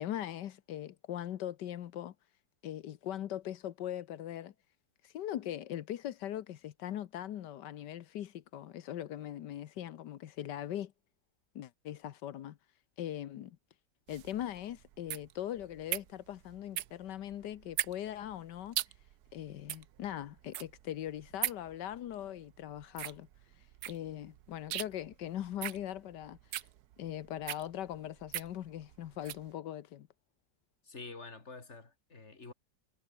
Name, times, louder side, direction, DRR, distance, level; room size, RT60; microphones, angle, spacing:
voice 1, 0.0-2.1 2.6-4.5 5.0-10.9 11.5-12.6 13.0-13.6 14.1-18.8 19.3-23.3 23.6-26.7 27.0-30.1, left 11 dB, 85° left, 1.5 m, -40 dB
sound 1, 14.1-29.5, right 13 dB, 70° right, 1.2 m, -41 dB
voice 2, 30.8-32.5, left 3 dB, 40° left, 3.2 m, -48 dB
omnidirectional pair, 1.8 m